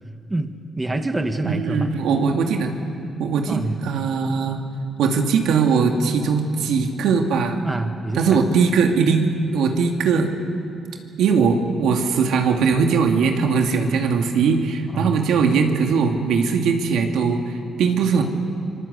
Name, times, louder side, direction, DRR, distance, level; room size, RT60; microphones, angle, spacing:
voice 1, 0.3-1.9 3.5-3.8 7.6-8.4 14.9-15.2, right 2 dB, 15° right, 7 dB, 1.5 m, -26 dB
voice 2, 1.4-2.7 3.2-4.6 5.0-7.6 8.1-10.3 11.2-18.2, right 5 dB, 80° right, 3 dB, 2.3 m, -20 dB
25.0 x 22.5 x 8.2 m, 2.5 s
cardioid pair, 90°, 0 cm